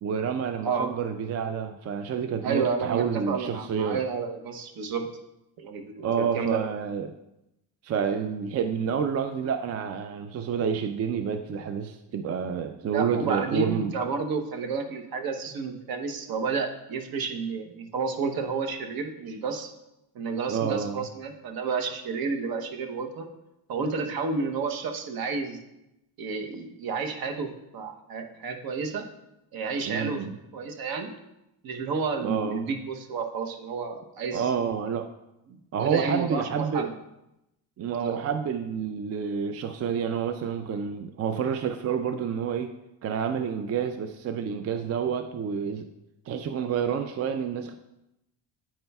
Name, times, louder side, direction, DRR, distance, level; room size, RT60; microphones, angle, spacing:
voice 1, 0.0-4.0 6.0-7.1 7.8-13.9 20.5-21.0 29.8-30.4 32.2-32.6 34.3-35.1 35.7-36.9 37.8-42.7 43.0-45.9 46.3-47.7, right 7 dB, 40° right, 8 dB, 0.4 m, -29 dB
voice 2, 2.4-5.0 5.6-6.6 12.9-19.7 20.1-23.3 23.7-25.6 26.2-29.1 29.5-30.2 30.5-31.1 31.6-34.4 35.8-36.9 37.9-38.2, right 4 dB, 55° right, 6 dB, 0.9 m, -31 dB
8.9 x 5.3 x 2.3 m, 0.88 s
cardioid pair, 90°, 43 cm